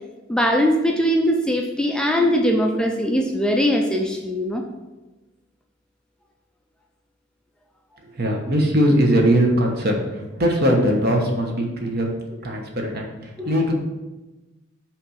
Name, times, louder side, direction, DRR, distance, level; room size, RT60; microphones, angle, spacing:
voice 1, 0.3-4.6 13.4-13.5, equal, 5° left, 1 dB, 0.4 m, -21 dB
voice 2, 8.2-10.0 10.4-12.1 12.4-13.1 13.4-13.7, equal, 55° right, 1 dB, 1.1 m, -20 dB
5.7 x 3.4 x 5.8 m, 1.1 s
head